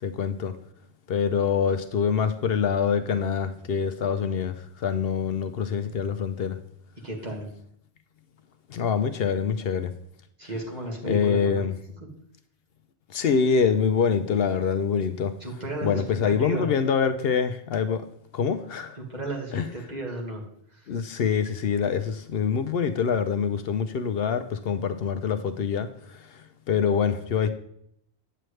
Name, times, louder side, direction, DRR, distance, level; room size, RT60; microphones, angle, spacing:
voice 1, 0.0-0.5 1.1-6.6 8.7-9.9 11.0-11.7 13.1-15.3 15.8-18.0 18.3-19.0 19.5-19.6 20.9-26.4 26.7-27.5, left 6 dB, 70° left, 0.8 m, -25 dB
voice 2, 7.0-7.5 10.4-11.6 15.4-16.7 19.0-20.4 20.7-21.0, right 2 dB, 40° right, 1.9 m, -34 dB
8.9 x 7.7 x 3.2 m
omnidirectional pair, 1.1 m